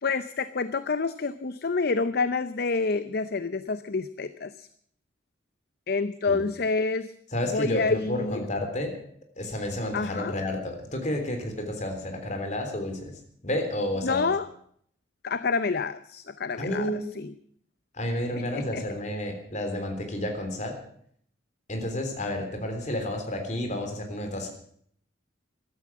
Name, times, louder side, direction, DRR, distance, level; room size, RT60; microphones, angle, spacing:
voice 1, 0.0-4.7 5.9-7.1 7.5-8.5 9.9-10.4 14.0-14.5 15.2-17.3 18.4-18.8, left 4 dB, 55° left, 13 dB, 0.6 m, -28 dB
voice 2, 7.3-9.0 9.4-13.1 13.4-14.3 16.6-17.0 17.9-20.8 21.7-24.5, left 1 dB, 40° left, 5 dB, 3.5 m, -31 dB
14.5 x 12.5 x 7.5 m, 0.64 s
head